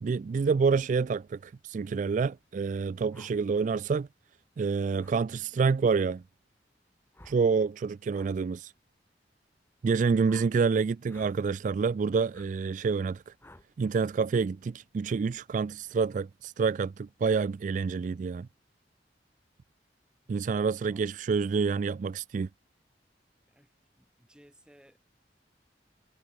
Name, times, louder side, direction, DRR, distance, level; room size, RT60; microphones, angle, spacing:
voice 1, 0.0-4.1 4.6-6.2 7.2-8.7 9.8-13.3 13.8-18.5 20.3-22.5, right 5 dB, 45° right, 0.3 m, -28 dB
sound 1, 3.1-3.3 5.0-5.2 7.1-7.4 8.1-8.3 10.2-10.5 11.1-11.4 12.3-12.5 13.4-13.7, left 1 dB, 15° left, 3.3 m, -53 dB
voice 2, 20.2-21.1 23.5-23.7 24.0-25.0, equal, 5° right, 3.5 m, -59 dB
head